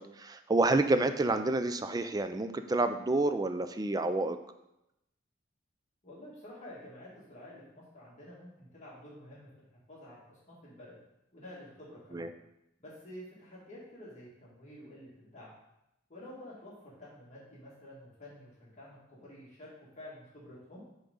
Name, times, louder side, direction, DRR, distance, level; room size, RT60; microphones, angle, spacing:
voice 1, 0.0-4.4 12.1-12.3, right 2 dB, 20° right, 9 dB, 0.4 m, -29 dB
voice 2, 6.0-11.0 11.3-12.3 12.8-15.5 16.1-20.8, left 1 dB, 35° left, -6 dB, 2.2 m, -50 dB
6.8 x 3.7 x 5.4 m, 0.85 s
head